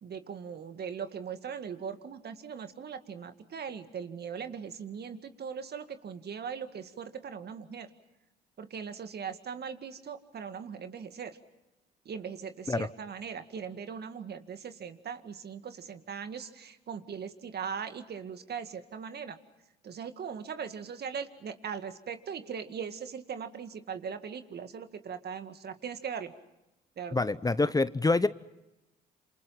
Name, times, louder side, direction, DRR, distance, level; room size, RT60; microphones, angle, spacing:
voice 1, 0.0-7.9 8.6-11.4 12.1-19.4 19.8-26.3 27.0-27.2, right 7 dB, 55° right, 9 dB, 2.1 m, -40 dB
voice 2, 27.1-28.3, left 3 dB, 20° left, 15 dB, 0.8 m, -26 dB
28.0 x 27.0 x 5.8 m, 0.94 s
hypercardioid pair, 55°, 20 cm